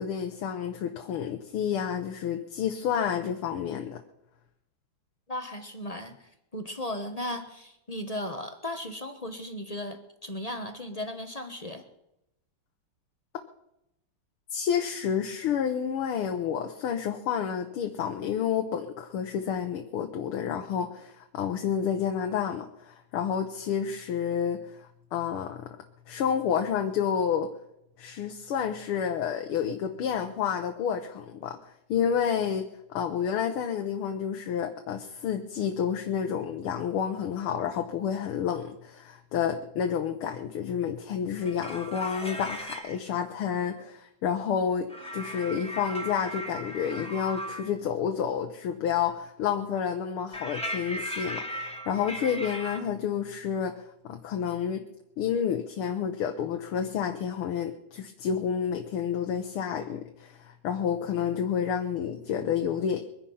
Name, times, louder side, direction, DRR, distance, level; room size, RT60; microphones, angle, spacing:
voice 1, 0.0-4.0 14.5-24.8 25.1-25.7 26.1-27.5 28.0-31.6 31.9-54.8 55.2-63.0, left 8 dB, 80° left, 5 dB, 1.9 m, -30 dB
voice 2, 5.3-11.8, left 1 dB, 25° left, 6 dB, 0.8 m, -36 dB
sound 1, 41.3-42.9 44.9-47.7 50.3-52.8, equal, 5° left, 2.3 m, -37 dB
23.0 x 10.0 x 5.6 m, 0.84 s
omnidirectional pair, 2.4 m